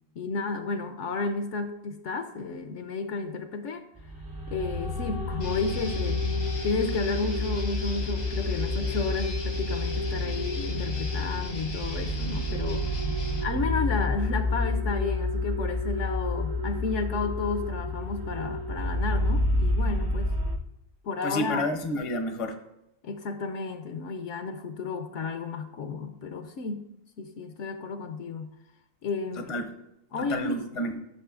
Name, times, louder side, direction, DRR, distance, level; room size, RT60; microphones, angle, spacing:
voice 1, 0.2-3.8 4.5-6.2 6.6-12.9 13.4-20.3 21.0-21.7 23.0-26.8 27.2-28.5 29.0-29.5 30.1-30.7, left 4 dB, 65° left, 7 dB, 0.9 m, -32 dB
sound 1, 4.0-20.6, left 2 dB, 35° right, 0.3 m, -29 dB
Guitar, 5.4-13.4, left 2 dB, 90° left, 2.0 m, -39 dB
voice 2, 21.2-22.5 29.4-29.7 30.2-31.0, left 1 dB, 35° left, 6 dB, 0.6 m, -30 dB
12.0 x 6.3 x 2.4 m, 0.85 s
omnidirectional pair, 1.4 m